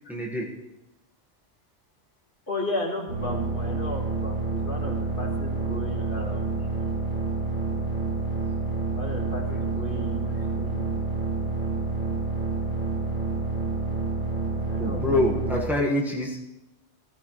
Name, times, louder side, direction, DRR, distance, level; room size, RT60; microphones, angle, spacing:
voice 1, 0.1-0.5 14.8-16.4, left 1 dB, ahead, -2 dB, 1.7 m, -25 dB
voice 2, 2.5-6.7 9.0-10.9 14.7-15.4, left 1 dB, 50° left, 0 dB, 2.3 m, -35 dB
sound 1, 3.1-15.6, right 3 dB, 45° right, 3.1 m, -28 dB
16.5 x 14.5 x 3.3 m, 0.90 s
omnidirectional pair, 1.2 m